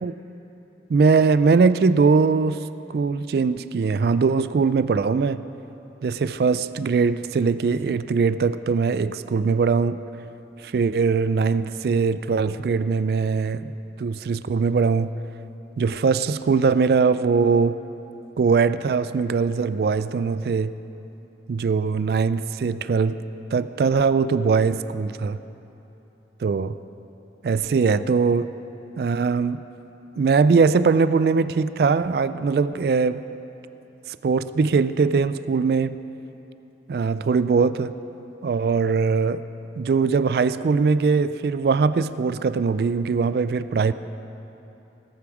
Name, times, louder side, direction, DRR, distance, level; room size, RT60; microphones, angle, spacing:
voice 1, 0.9-2.6 2.9-5.4 6.0-10.0 10.6-13.7 14.0-15.1 15.8-17.8 18.4-20.7 21.5-23.2 23.5-25.4 26.4-26.8 27.4-28.5 29.0-29.6 30.2-33.2 34.2-36.0 36.9-37.9 38.4-39.4 39.8-43.9, right 5 dB, 60° right, 14 dB, 0.3 m, -21 dB
19.0 x 7.0 x 4.8 m, 3.0 s
head